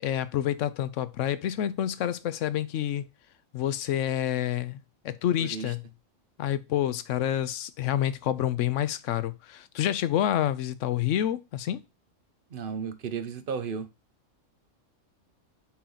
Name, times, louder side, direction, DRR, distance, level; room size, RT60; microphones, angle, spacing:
voice 1, 0.0-3.1 3.5-4.8 5.0-5.8 6.4-11.8, left 11 dB, 75° left, 0.9 m, -28 dB
voice 2, 5.4-5.7 12.5-13.9, right 6 dB, 50° right, 0.8 m, -34 dB
8.4 x 2.9 x 3.8 m
omnidirectional pair, 1.3 m